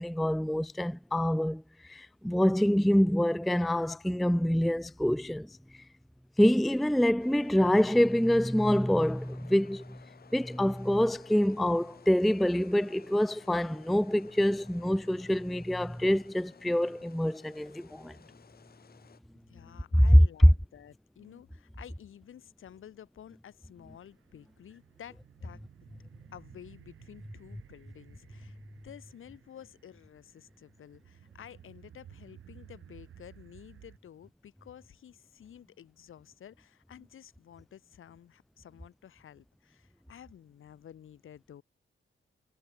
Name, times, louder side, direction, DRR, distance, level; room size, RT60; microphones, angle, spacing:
voice 1, 0.0-5.6 6.4-10.0 10.3-18.2 19.9-20.0, equal, ahead, 0.4 m, -26 dB
sound 1, 7.2-19.2, left 7 dB, 45° left, 6.8 m, -56 dB
voice 2, 19.5-25.6 26.3-28.6 28.8-41.6, left 10 dB, 75° left, 4.1 m, -52 dB
sound 2, 23.9-34.0, right 10 dB, 80° right, 4.5 m, -56 dB
wide cardioid pair, 175°, 21 cm